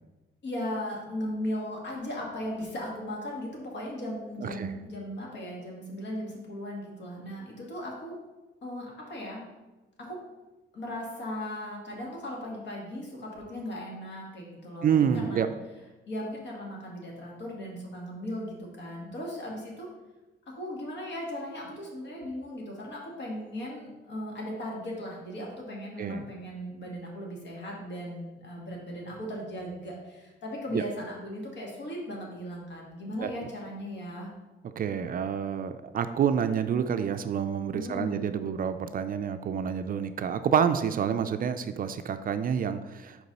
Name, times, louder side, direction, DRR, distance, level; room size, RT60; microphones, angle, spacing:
voice 1, 0.4-8.2 8.6-9.4 10.0-10.2 10.7-15.5 16.1-19.9 20.5-34.3 37.7-38.3, equal, 65° left, -2 dB, 1.7 m, -37 dB
voice 2, 14.8-15.5 26.0-26.3 30.7-30.8 33.2-33.3 34.8-43.3, right 8 dB, 45° right, 10 dB, 0.4 m, -28 dB
4.6 x 4.0 x 5.3 m, 1.1 s
cardioid pair, 90°, 20 cm